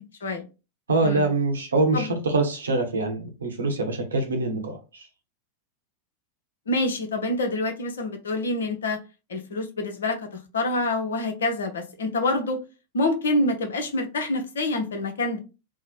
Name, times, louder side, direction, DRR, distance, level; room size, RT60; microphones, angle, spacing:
voice 1, 0.9-5.1, right 2 dB, 70° right, 0.7 m, -24 dB
voice 2, 6.7-9.0 9.3-10.3 10.5-12.6 12.9-15.4, left 2 dB, 65° left, 0.6 m, -26 dB
2.8 x 2.0 x 4.0 m
figure-of-eight pair, 90°, 0 cm